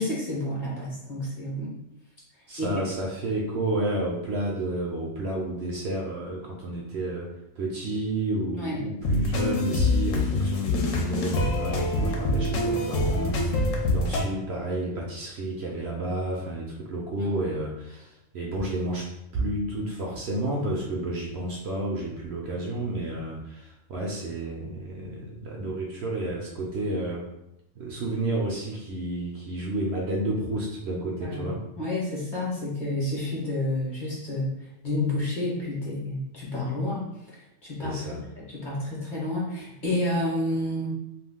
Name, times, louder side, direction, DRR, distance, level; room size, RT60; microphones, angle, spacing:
voice 1, 0.0-1.7 2.6-2.9 8.6-8.8 17.2-17.3 31.2-31.5 31.8-34.5 34.8-37.1 37.6-40.9, left 1 dB, 45° left, -5 dB, 0.8 m, -30 dB
voice 2, 2.5-19.1 19.3-27.2 27.7-31.6 37.8-38.2, right 1 dB, 65° right, -2 dB, 0.7 m, -31 dB
sound 1, 9.0-14.2, left 2 dB, 75° left, 0.9 m, -25 dB
2.5 x 2.2 x 3.4 m, 0.87 s
omnidirectional pair, 1.3 m